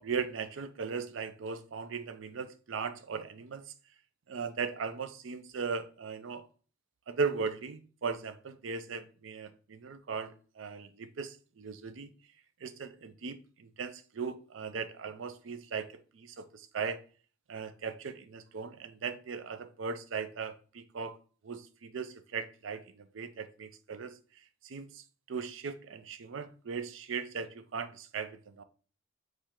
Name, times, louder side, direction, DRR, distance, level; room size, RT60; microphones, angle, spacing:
voice 1, 0.0-3.7 4.3-6.5 7.1-12.1 12.6-17.0 17.5-21.2 21.4-24.2 24.6-28.6, right 5 dB, 80° right, 0.5 m, -38 dB
4.4 x 3.3 x 3.7 m
head